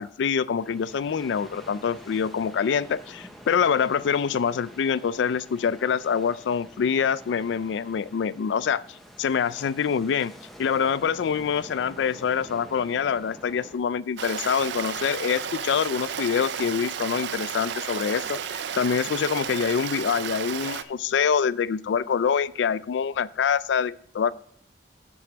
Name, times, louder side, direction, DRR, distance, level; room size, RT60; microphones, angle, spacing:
voice 1, 0.0-8.8 9.2-10.3 10.6-24.3, left 7 dB, 85° left, 18 dB, 0.3 m, -25 dB
sound 1, 0.5-13.8, equal, ahead, 0.8 m, -47 dB
Stream, 14.2-20.8, right 8 dB, 75° right, 0.5 m, -33 dB
8.3 x 4.4 x 5.9 m, 0.63 s
head